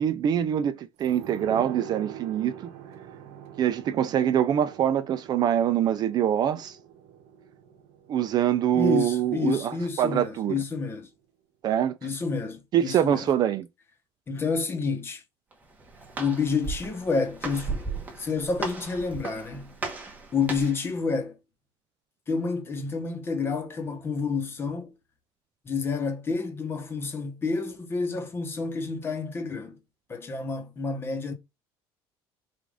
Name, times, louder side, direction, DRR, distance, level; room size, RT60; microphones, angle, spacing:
voice 1, 0.0-2.7 3.6-6.8 8.1-10.5 11.6-12.0 12.7-13.7, right 10 dB, 40° right, 0.4 m, -24 dB
sound 1, 1.0-10.3 10.6-10.7, right 9 dB, 80° right, 1.0 m, -44 dB
voice 2, 8.7-11.1 12.0-13.2 14.3-15.2 16.2-20.0 20.3-21.4 22.3-24.9 25.6-29.8 30.1-31.3, left 4 dB, 20° left, 0.9 m, -29 dB
Walk footsteps, 15.5-20.9, right 4 dB, 15° right, 1.1 m, -36 dB
5.0 x 2.5 x 3.5 m
cardioid pair, 160°, 10 cm